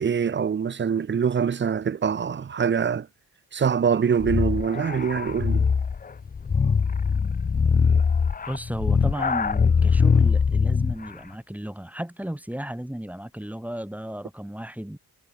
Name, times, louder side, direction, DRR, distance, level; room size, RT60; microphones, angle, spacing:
voice 1, 0.0-3.1 3.5-5.7, right 7 dB, 30° right, 0.5 m, -24 dB
sound 1, 4.2-11.1, left 5 dB, 25° left, 0.5 m, -22 dB
voice 2, 8.5-15.0, right 1 dB, 5° right, 1.9 m, -34 dB
wide cardioid pair, 125°, 36 cm